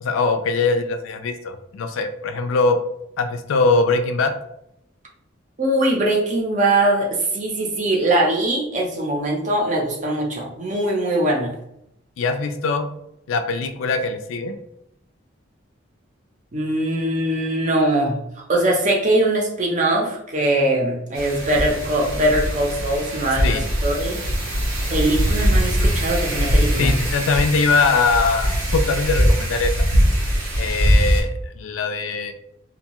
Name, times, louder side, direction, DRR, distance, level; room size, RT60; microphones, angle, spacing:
voice 1, 0.0-2.8 3.2-4.3 12.2-12.9 13.3-14.6 23.4-23.7 26.8-29.9 30.6-32.3, left 4 dB, 85° left, 7 dB, 0.3 m, -21 dB
voice 2, 5.6-11.5 16.5-18.2 18.5-24.2 24.9-26.9, right 1 dB, 40° right, 0 dB, 0.5 m, -21 dB
Wind, 21.2-31.2, equal, 85° right, 0.8 m, -21 dB
2.6 x 2.2 x 2.9 m, 0.79 s
head